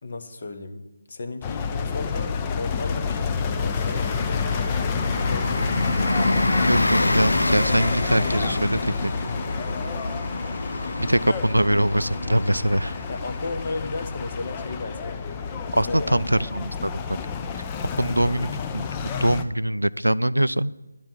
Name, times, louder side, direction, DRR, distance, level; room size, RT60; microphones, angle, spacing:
voice 1, 0.0-0.8 1.1-4.0 5.3-5.8 10.8-11.1 13.1-15.2 15.9-16.2, left 3 dB, 45° left, 8 dB, 1.2 m, -34 dB
sound 1, 1.4-19.4, left 6 dB, 15° left, 0.6 m, -29 dB
Bus, 3.7-16.0, left 1 dB, 75° left, 0.4 m, -28 dB
voice 2, 6.6-9.1 11.0-13.0 15.7-17.0 17.9-18.9 19.1-20.8, right 1 dB, 85° right, 18 dB, 0.3 m, -23 dB
11.0 x 7.4 x 7.2 m, 1.1 s
figure-of-eight pair, 155°, 0 cm